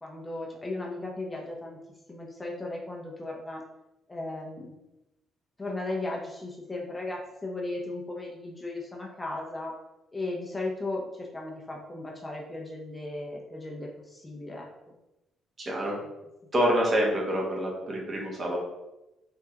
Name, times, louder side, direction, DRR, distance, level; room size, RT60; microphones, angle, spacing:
voice 1, 0.0-1.8 2.1-3.6 4.1-4.8 5.6-9.7 10.1-14.9, left 2 dB, 20° left, -1 dB, 0.7 m, -36 dB
voice 2, 15.6-16.0 16.5-18.6, equal, 35° right, -2 dB, 0.9 m, -27 dB
3.6 x 2.7 x 2.4 m, 0.96 s
figure-of-eight pair, 45°, 0 cm